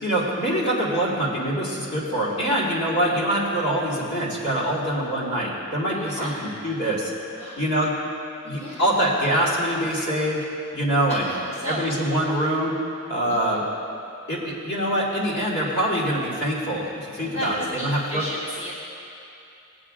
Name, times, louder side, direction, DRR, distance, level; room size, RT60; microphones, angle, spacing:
voice 1, 0.0-7.1 7.6-7.9 8.5-10.4 10.7-11.3 11.6-12.8 13.1-13.6 14.3-18.3, right 1 dB, 55° left, -6 dB, 2.3 m, -24 dB
voice 2, 5.9-6.4 7.3-7.6 8.4-9.0 11.3-12.0 13.3-13.6 17.2-18.7, equal, 30° left, -6 dB, 0.9 m, -34 dB
17.5 x 8.5 x 2.5 m, 2.7 s
head